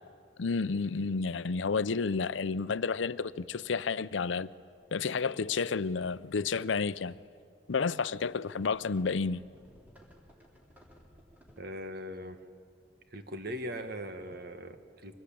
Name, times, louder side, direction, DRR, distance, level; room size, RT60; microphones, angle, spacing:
voice 1, 0.4-4.5 4.9-7.2 7.7-9.4, left 4 dB, 80° left, 0.6 m, -31 dB
sound 1, 1.6-1.7 3.2-3.4 3.7-3.9 4.5-4.7 5.0-7.1 8.2-11.6, equal, 10° right, 3.7 m, -59 dB
voice 2, 11.6-12.4 13.1-15.1, equal, 55° right, 1.6 m, -40 dB
24.5 x 19.5 x 8.6 m
head